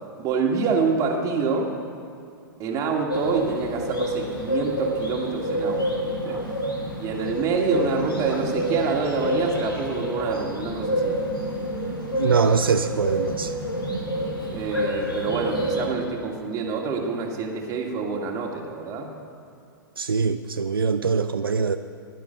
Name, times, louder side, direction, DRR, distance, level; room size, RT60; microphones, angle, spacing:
voice 1, 0.2-1.7 2.6-6.4 7.0-11.3 14.5-19.1, right 5 dB, 30° right, 0 dB, 2.2 m, -27 dB
sound 1, 3.1-15.9, equal, 85° left, 3.3 m, -28 dB
voice 2, 12.2-13.5 20.0-21.8, right 5 dB, 80° right, 9 dB, 0.5 m, -23 dB
16.5 x 11.5 x 5.3 m, 2.4 s
figure-of-eight pair, 110°, 12 cm